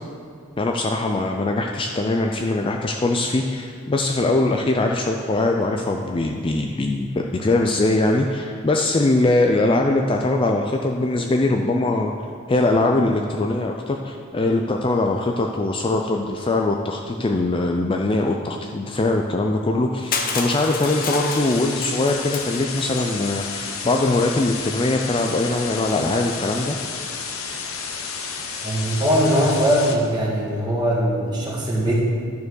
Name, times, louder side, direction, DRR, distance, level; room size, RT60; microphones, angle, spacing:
voice 1, 0.6-12.1 12.5-26.8, left 2 dB, 25° left, 2 dB, 0.4 m, -22 dB
Crushing, 20.1-23.0, left 4 dB, 40° left, 0.8 m, -29 dB
sound 1, 20.9-30.0, left 5 dB, 75° left, 0.9 m, -31 dB
voice 2, 28.6-31.9, equal, 20° right, -6 dB, 2.0 m, -21 dB
11.0 x 4.6 x 6.3 m, 2.2 s
head